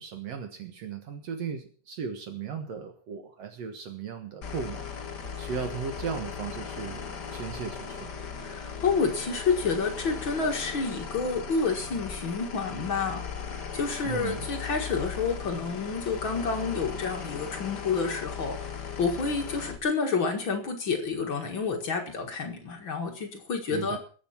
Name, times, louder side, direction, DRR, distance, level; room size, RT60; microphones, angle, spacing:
voice 1, 0.0-4.8 5.4-7.0 7.3-8.1 14.0-14.4 23.7-24.0, right 6 dB, 65° right, 5 dB, 1.6 m, -36 dB
sound 1, 4.4-19.8, left 6 dB, 75° left, 0.9 m, -38 dB
voice 2, 8.4-24.0, left 4 dB, 55° left, 2 dB, 1.3 m, -29 dB
21.5 x 8.4 x 5.8 m, 0.43 s
omnidirectional pair, 5.0 m